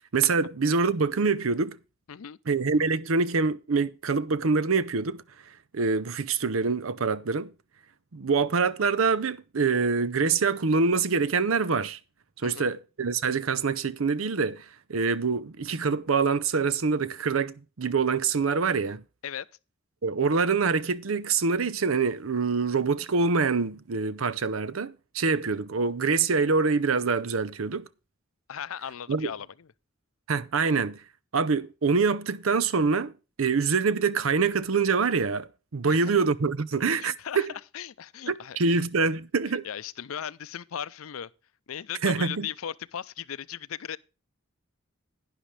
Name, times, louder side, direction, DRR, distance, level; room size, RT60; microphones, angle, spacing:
voice 1, 0.1-1.8 2.5-5.2 5.7-7.5 8.1-12.0 12.4-14.6 14.9-19.0 20.0-27.9 29.1-29.3 30.3-31.0 31.3-37.5 38.3-39.7 42.0-42.5, right 4 dB, 75° right, 0.7 m, -25 dB
voice 2, 28.5-29.7 35.9-36.1 37.0-38.8 39.6-41.3 41.7-44.0, left 9 dB, 90° left, 0.5 m, -37 dB
11.5 x 9.9 x 3.2 m
head